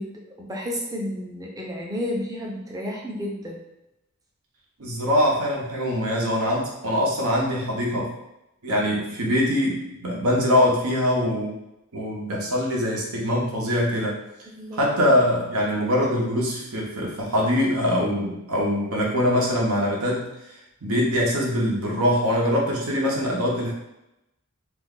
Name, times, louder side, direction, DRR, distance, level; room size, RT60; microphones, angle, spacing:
voice 1, 0.0-3.6 14.5-15.1, left 1 dB, 15° right, -2 dB, 0.5 m, -32 dB
voice 2, 4.8-8.1 8.6-11.6 11.9-14.2 14.7-20.3 20.8-23.7, left 1 dB, 80° right, -2 dB, 0.8 m, -23 dB
2.5 x 2.2 x 3.7 m, 0.89 s
head